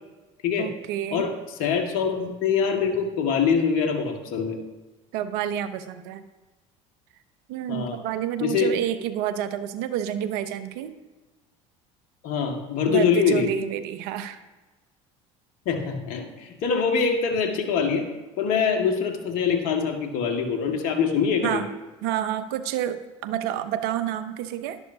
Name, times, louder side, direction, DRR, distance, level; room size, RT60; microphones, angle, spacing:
voice 1, 0.6-1.3 5.1-6.2 7.5-10.9 12.9-14.4 21.4-21.7 22.0-24.8, right 10 dB, 70° right, 12 dB, 0.8 m, -29 dB
voice 2, 1.1-4.6 7.7-8.0 8.4-8.7 12.2-13.5 15.7-18.1 18.4-21.6, left 6 dB, 60° left, 3 dB, 1.9 m, -24 dB
12.0 x 11.5 x 2.8 m, 1.2 s
hypercardioid pair, 75°, 17 cm